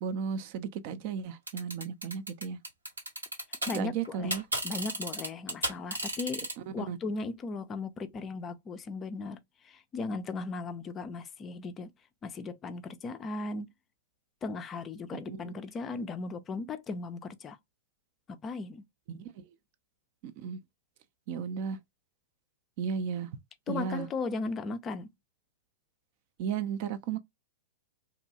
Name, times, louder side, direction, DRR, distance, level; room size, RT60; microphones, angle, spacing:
voice 1, 0.0-2.6 3.7-4.4 6.7-7.0 15.1-15.5 19.1-19.5 20.2-20.6 21.3-21.8 22.8-23.3 23.7-24.1 26.4-27.2, right 7 dB, 45° right, 0.4 m, -35 dB
sound 1, 1.5-3.8 4.1-6.5, right 1 dB, 85° right, 1.0 m, -33 dB
voice 2, 3.7-4.4 4.6-11.9 12.2-13.7 14.4-17.6 18.3-18.8 23.7-25.1, left 3 dB, 25° left, 0.4 m, -37 dB
2.6 x 2.2 x 2.7 m
figure-of-eight pair, 105°, 0 cm